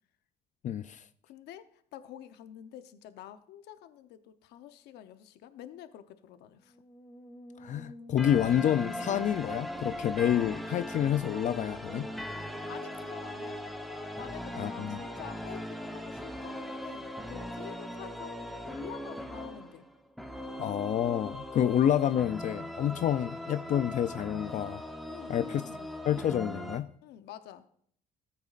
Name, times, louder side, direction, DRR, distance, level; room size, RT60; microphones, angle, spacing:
voice 1, 0.6-1.0 7.6-12.1 14.6-15.0 20.6-24.8 25.3-25.6 26.1-26.9, left 10 dB, 45° left, 0.4 m, -28 dB
voice 2, 1.2-6.8 12.5-13.6 14.2-19.9 25.1-25.9 27.0-27.8, left 11 dB, 80° left, 0.8 m, -48 dB
Musical instrument, 6.6-20.0, left 3 dB, 30° left, 2.4 m, -50 dB
sound 1, 8.2-26.8, equal, ahead, 0.9 m, -40 dB
14.5 x 8.5 x 2.5 m
cardioid pair, 110°, 17 cm